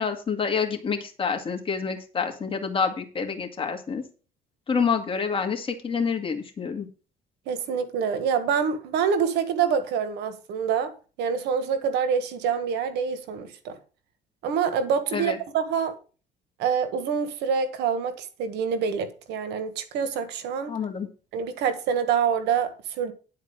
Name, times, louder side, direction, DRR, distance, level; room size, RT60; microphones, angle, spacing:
voice 1, 0.0-4.0 4.7-6.9 15.1-15.4 20.7-21.1, left 5 dB, 30° left, 2.2 m, -27 dB
voice 2, 7.5-10.9 11.2-13.8 14.4-15.9 16.6-20.7 21.3-23.1, right 7 dB, 85° right, 1.5 m, -26 dB
10.5 x 4.7 x 7.5 m
cardioid pair, 110°, 17 cm